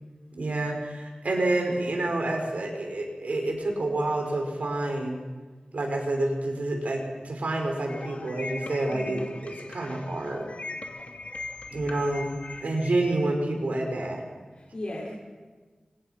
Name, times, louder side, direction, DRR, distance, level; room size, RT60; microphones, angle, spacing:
voice 1, 0.4-5.2 5.7-10.5 11.7-14.2, right 2 dB, 85° right, 2 dB, 5.6 m, -28 dB
sound 1, 7.9-12.9, left 2 dB, 70° left, 2.6 m, -40 dB
voice 2, 8.9-9.2 12.8-12.9 14.5-15.1, left 1 dB, 50° left, -6 dB, 6.2 m, -37 dB
30.0 x 26.5 x 6.0 m, 1.4 s
wide cardioid pair, 80°, 2 cm